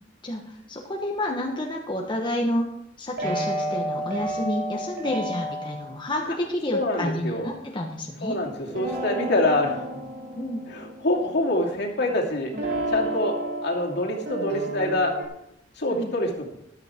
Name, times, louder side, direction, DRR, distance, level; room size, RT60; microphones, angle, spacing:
voice 1, 0.2-2.7 3.0-8.4 10.3-10.6 15.9-16.1, left 1 dB, 25° left, 0 dB, 1.1 m, -29 dB
sound 1, 3.2-5.9 8.6-12.0 12.5-15.2, right 1 dB, 60° right, 2.7 m, -31 dB
voice 2, 6.7-7.5 8.2-9.8 10.7-12.5 12.9-13.4 13.6-15.1 15.7-16.5, left 1 dB, 60° left, -1 dB, 2.7 m, -25 dB
14.0 x 11.5 x 3.6 m, 0.76 s
head